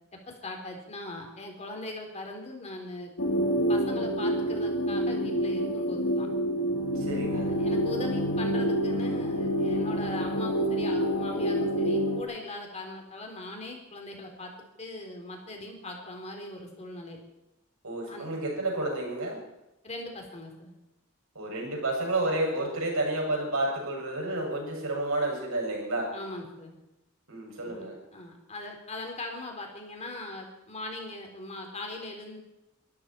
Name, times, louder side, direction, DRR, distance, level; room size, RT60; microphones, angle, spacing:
voice 1, 0.3-3.1 3.7-6.3 7.3-14.5 14.8-17.2 18.1-18.3 19.8-20.7 26.1-26.7 27.6-27.8 28.1-32.4, left 2 dB, 30° left, 2 dB, 3.6 m, -40 dB
sound 1, 3.2-12.2, equal, 70° left, 1.8 m, -27 dB
voice 2, 6.9-7.5 17.8-19.4 21.3-26.1 27.3-28.0, right 2 dB, 70° right, -1 dB, 6.7 m, -30 dB
23.5 x 13.0 x 4.4 m, 0.95 s
head